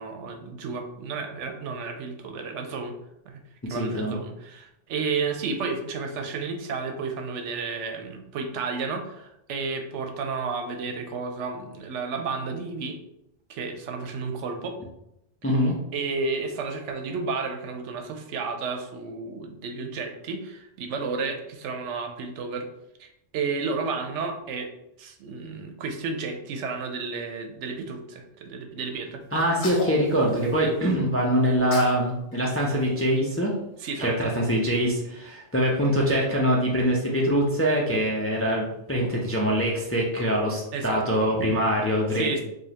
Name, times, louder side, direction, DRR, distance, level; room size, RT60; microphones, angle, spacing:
voice 1, 0.0-2.9 3.3-3.4 3.7-13.0 13.5-14.8 15.9-22.7 23.0-24.7 25.0-29.2 33.8-34.3 40.7-41.6 42.1-42.4, right 4 dB, 85° right, 5 dB, 0.9 m, -32 dB
voice 2, 3.7-4.2 15.4-15.8 29.3-33.5 34.0-42.4, equal, 25° left, -2 dB, 0.3 m, -24 dB
Sneeze, 29.4-31.0 31.4-32.0 32.3-33.8, left 3 dB, 50° left, 0.8 m, -38 dB
4.9 x 2.3 x 2.8 m, 0.83 s
omnidirectional pair, 1.2 m